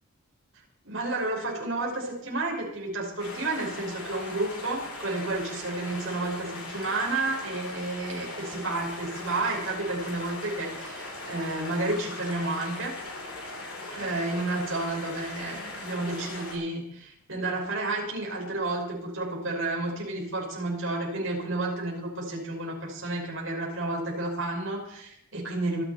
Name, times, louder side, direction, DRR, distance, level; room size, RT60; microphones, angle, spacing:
voice 1, 0.8-13.0 13.9-25.8, right 2 dB, 60° right, -2 dB, 5.5 m, -31 dB
sound 1, 3.2-16.5, left 2 dB, 85° left, 7.5 m, -39 dB
25.5 x 10.5 x 4.3 m, 0.73 s
head